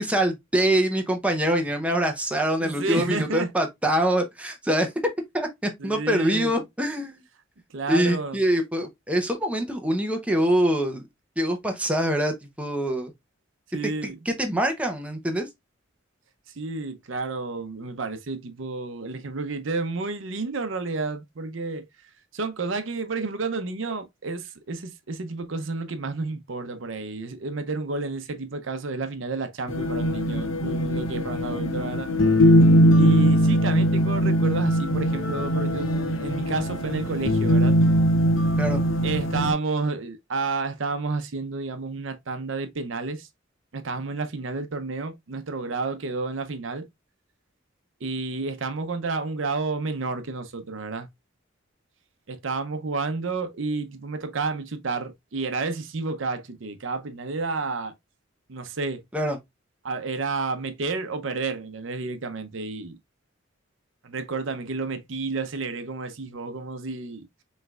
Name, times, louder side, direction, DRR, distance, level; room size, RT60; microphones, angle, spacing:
voice 1, 0.0-4.9 5.3-7.2 7.9-11.0 11.4-13.1 13.8-15.5 38.6-38.8 59.1-59.4, right 1 dB, 5° right, 0.7 m, -24 dB
voice 2, 2.6-3.5 5.8-6.5 7.7-8.4 13.7-14.2 16.6-21.9 22.3-32.1 32.9-35.9 36.2-37.8 39.0-43.3 43.7-46.9 48.0-51.1 52.3-57.9 58.5-59.0 59.8-63.0 64.0-67.3, right 3 dB, 70° right, 0.7 m, -30 dB
sound 1, 29.7-39.5, equal, 85° left, 0.9 m, -21 dB
5.4 x 3.2 x 2.4 m
head